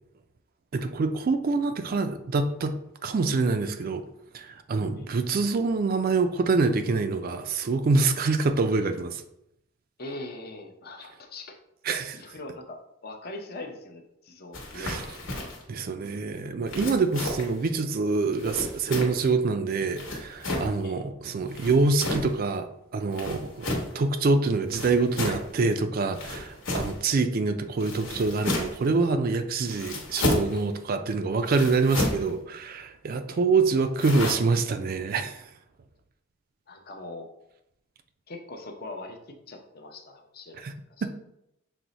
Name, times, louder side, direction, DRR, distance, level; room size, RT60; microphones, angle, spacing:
voice 1, 0.7-2.8 3.0-4.0 4.3-9.2 11.9-12.2 14.7-15.0 15.7-22.7 22.9-23.7 23.9-35.4 40.6-40.7 41.0-41.1, right 3 dB, 45° right, 8 dB, 0.3 m, -25 dB
voice 2, 10.0-11.6 12.1-15.3 20.8-21.0 33.3-33.4 36.7-37.3 38.3-39.2 39.5-40.7 41.0-41.1, left 2 dB, 50° left, 3 dB, 0.6 m, -41 dB
sound 1, 14.5-15.6 16.7-17.6 18.4-19.3 20.0-20.7 21.5-22.3 23.1-24.0 24.7-25.5 26.1-27.0 27.8-28.9 29.6-30.6 31.5-32.3 34.0-34.3, left 1 dB, 65° left, 1.1 m, -31 dB
6.0 x 2.1 x 3.9 m, 0.80 s
head